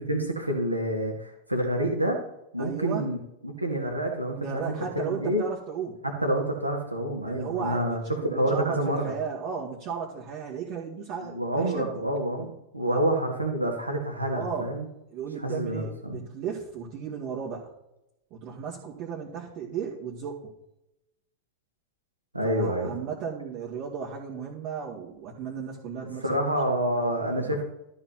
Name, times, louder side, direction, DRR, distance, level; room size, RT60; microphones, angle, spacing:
voice 1, 0.0-2.2 2.5-3.2 3.4-4.6 5.0-5.4 6.0-9.2 11.2-14.9 15.4-16.2 22.3-22.9 26.2-27.6, right 1 dB, 85° right, 3 dB, 2.0 m, -28 dB
voice 2, 2.6-3.1 4.3-6.0 7.2-11.9 12.9-13.0 14.3-14.7 15.1-17.7 18.3-20.5 22.4-26.4 27.0-27.6, right 6 dB, 40° right, -4 dB, 2.1 m, -35 dB
13.0 x 4.4 x 5.8 m, 0.87 s
figure-of-eight pair, 90°, 0 cm